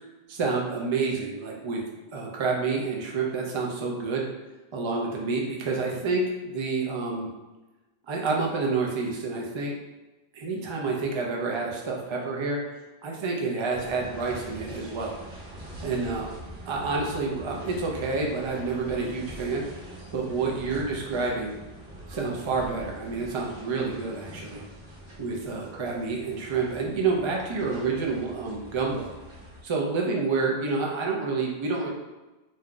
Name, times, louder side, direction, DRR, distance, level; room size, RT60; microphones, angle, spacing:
voice 1, 0.3-1.8 2.1-4.2 4.7-7.3 8.1-9.7 10.3-12.6 13.0-15.2 15.8-16.3 16.6-19.6 20.1-21.6 22.1-24.6 25.2-29.1 29.6-31.9, right 4 dB, 40° right, -1 dB, 0.4 m, -28 dB
sound 1, 13.7-29.6, equal, 60° right, 1.1 m, -43 dB
2.6 x 2.3 x 3.7 m, 1.1 s
omnidirectional pair, 1.1 m